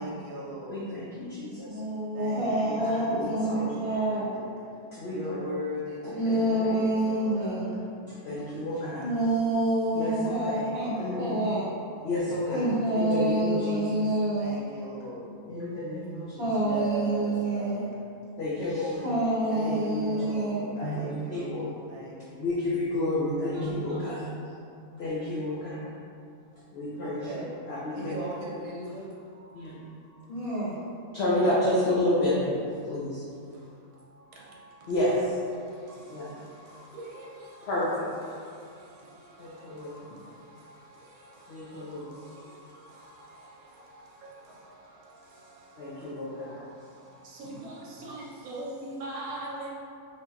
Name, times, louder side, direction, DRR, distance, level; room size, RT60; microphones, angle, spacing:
voice 1, 0.0-0.9 2.1-4.5 5.1-7.8 10.4-11.4 14.4-15.3 16.5-17.9 19.5-22.4 23.5-24.1 27.0-30.5 31.1-31.2 32.8-34.9 35.5-49.7, right 1 dB, 80° right, -3 dB, 1.1 m, -41 dB
voice 2, 0.7-1.8 2.4-2.5 2.8-3.6 4.9-5.4 6.0-6.8 8.1-9.1 9.9-10.1 10.4-10.5 11.0-11.4 12.0-14.0 15.5-16.4 18.4-19.1 19.8-20.0 20.8-21.6 22.4-24.3 25.0-25.9 26.7-27.3 27.7-28.2 29.5-29.8 31.1-33.2 34.9-35.3 36.1-36.3 37.6-38.1 39.4-40.0 41.5-42.2 45.8-46.6, left 1 dB, 65° left, -8 dB, 0.6 m, -30 dB
voice 3, 1.6-4.4 6.1-7.8 9.0-10.9 11.2-11.7 12.5-14.6 16.4-17.8 19.0-20.7 30.3-30.8, right 1 dB, 35° right, -9 dB, 0.8 m, -27 dB
3.1 x 2.7 x 2.3 m, 2.5 s
omnidirectional pair, 1.5 m